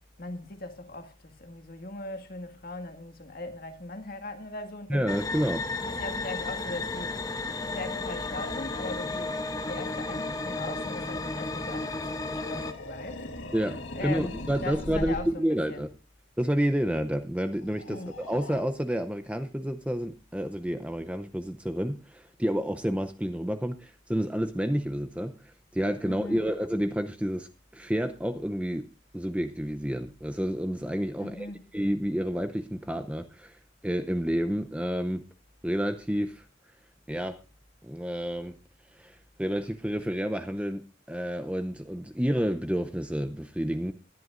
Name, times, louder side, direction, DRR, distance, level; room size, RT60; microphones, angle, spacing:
voice 1, 0.2-5.1 5.9-7.2 7.7-9.4 9.7-13.3 13.9-15.8 17.9-18.1 26.0-26.4 31.2-31.6, left 2 dB, 45° left, 1.8 m, -39 dB
voice 2, 4.9-5.7 13.5-15.9 16.4-28.9 29.1-31.5 31.7-33.6 33.8-35.2 35.6-36.4 37.1-37.4 37.8-38.6 38.9-40.8 41.1-43.9, equal, 5° right, 0.6 m, -29 dB
sound 1, 5.1-12.7, left 3 dB, 20° left, 0.8 m, -33 dB
sound 2, 12.1-15.4 17.5-18.6, left 1 dB, 75° left, 1.6 m, -40 dB
20.0 x 11.0 x 2.5 m
head